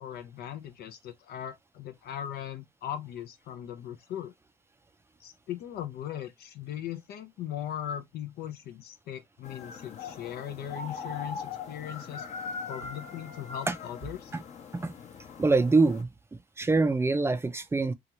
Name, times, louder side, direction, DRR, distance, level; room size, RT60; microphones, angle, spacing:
voice 1, 0.0-4.3 5.2-12.3 12.7-14.4, left 10 dB, 70° left, 0.6 m, -39 dB
sound 1, 9.4-16.0, left 5 dB, 40° left, 0.8 m, -41 dB
voice 2, 15.4-16.1 16.6-17.9, right 3 dB, 15° right, 0.4 m, -24 dB
2.8 x 2.4 x 2.9 m
cardioid pair, 110°, 17 cm